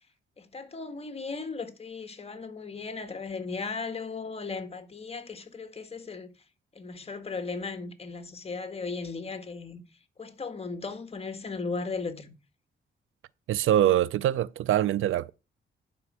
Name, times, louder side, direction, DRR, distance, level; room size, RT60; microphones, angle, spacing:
voice 1, 0.4-6.3 6.8-9.8 10.2-12.3, left 4 dB, 30° left, 1.6 m, -36 dB
voice 2, 13.5-15.3, right 12 dB, 85° right, 0.5 m, -24 dB
11.5 x 5.2 x 4.7 m
cardioid pair, 100°, 20 cm